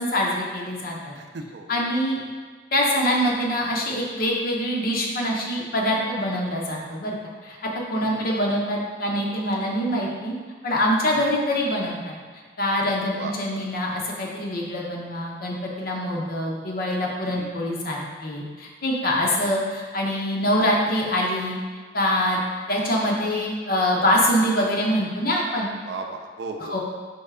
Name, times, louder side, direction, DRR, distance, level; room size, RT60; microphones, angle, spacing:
voice 1, 0.0-1.1 1.7-2.2 2.7-7.2 7.4-7.6 7.9-10.3 10.6-12.2 12.6-21.6 21.9-22.4 22.7-25.7 26.7-26.8, equal, 55° left, -2 dB, 0.8 m, -24 dB
voice 2, 1.1-1.8 8.0-8.3 11.1-11.3 13.1-13.3 17.3-17.5 19.4-19.5 25.9-26.8, right 3 dB, 70° right, 4 dB, 0.4 m, -36 dB
4.5 x 3.2 x 3.6 m, 1.5 s
head